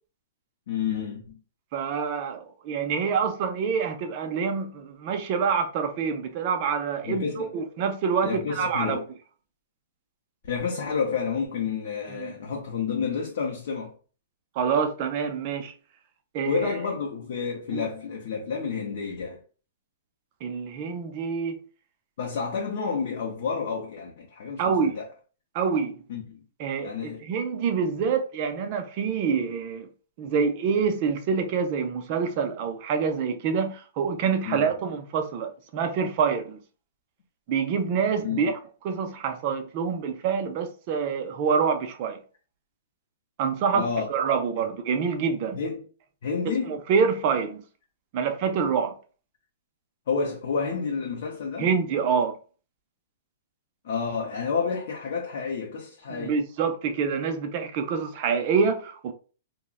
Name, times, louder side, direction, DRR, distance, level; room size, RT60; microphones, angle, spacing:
voice 1, 0.7-1.4 7.0-7.5 8.2-9.0 10.5-13.9 16.4-19.4 22.2-25.1 26.1-26.4 26.8-27.2 34.5-34.7 38.2-38.4 43.7-44.1 45.5-45.8 46.2-46.8 50.1-51.7 53.8-56.4, left 5 dB, 50° left, 0.5 m, -30 dB
voice 2, 1.7-9.0 12.1-12.3 14.6-15.7 16.3-16.7 17.7-17.9 20.4-21.6 24.6-24.9 25.5-25.9 26.6-29.9 30.2-36.6 37.5-38.5 38.8-42.2 43.4-45.6 46.7-47.6 48.1-49.0 51.6-52.4 56.1-59.1, right 6 dB, 30° right, 0.4 m, -26 dB
2.4 x 2.0 x 3.5 m
hypercardioid pair, 175°, 0 cm